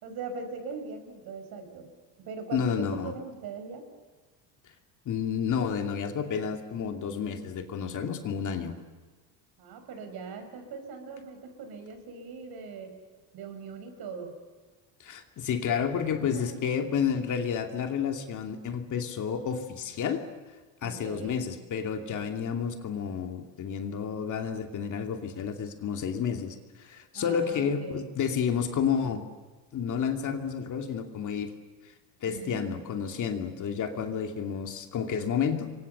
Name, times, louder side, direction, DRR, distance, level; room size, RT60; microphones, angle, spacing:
voice 1, 0.0-1.9 2.2-3.8 8.5-8.8 9.6-13.0 13.3-14.4 16.2-16.6 20.8-21.4 27.1-28.1 32.2-32.8, right 4 dB, 50° right, 7 dB, 6.0 m, -40 dB
voice 2, 2.5-3.1 5.1-8.7 15.0-20.3 20.8-29.2 29.7-31.5 32.2-35.7, left 7 dB, 40° left, 5 dB, 2.7 m, -30 dB
29.0 x 24.5 x 6.9 m, 1.3 s
cardioid pair, 145°, 46 cm